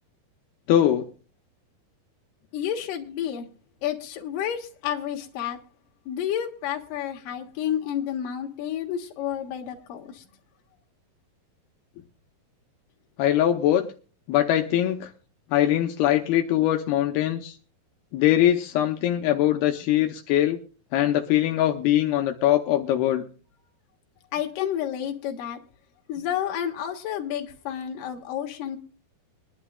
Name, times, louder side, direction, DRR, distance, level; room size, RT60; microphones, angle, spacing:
voice 1, 0.7-1.1 13.2-13.8 14.3-15.1 15.5-17.6 18.1-20.6 20.9-23.2, left 12 dB, 80° left, 2.7 m, -22 dB
voice 2, 2.5-3.5 3.8-5.6 6.1-10.2 24.3-25.6 26.1-28.8, left 10 dB, 65° left, 2.9 m, -30 dB
24.0 x 11.0 x 2.3 m
omnidirectional pair, 4.5 m